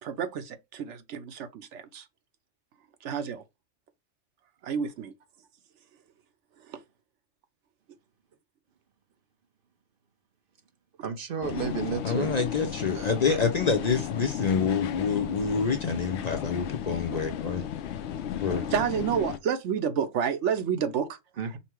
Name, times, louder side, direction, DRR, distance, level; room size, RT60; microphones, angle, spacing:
voice 1, 0.0-2.1 3.0-3.4 4.6-5.1 6.6-6.8 18.7-21.2, right 7 dB, 85° right, 1.1 m, -29 dB
voice 2, 11.0-12.3 12.9-13.4 21.4-21.6, right 6 dB, 55° right, 1.0 m, -33 dB
sound 1, 11.4-19.4, left 9 dB, 75° left, 0.8 m, -35 dB
voice 3, 12.0-17.7 18.4-18.6, left 5 dB, 45° left, 0.6 m, -27 dB
5.6 x 2.1 x 4.5 m
omnidirectional pair, 1.2 m